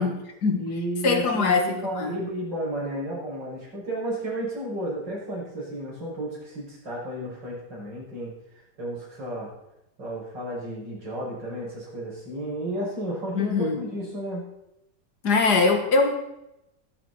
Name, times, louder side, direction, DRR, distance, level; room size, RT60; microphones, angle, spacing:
voice 1, 0.0-0.7 1.0-2.1 13.4-13.8 15.2-16.2, left 4 dB, 65° left, 5 dB, 2.1 m, -22 dB
voice 2, 0.6-8.3 8.8-9.5 10.0-14.4, right 1 dB, 75° right, -5 dB, 6.8 m, -32 dB
14.0 x 12.0 x 4.2 m, 0.86 s
omnidirectional pair, 1.9 m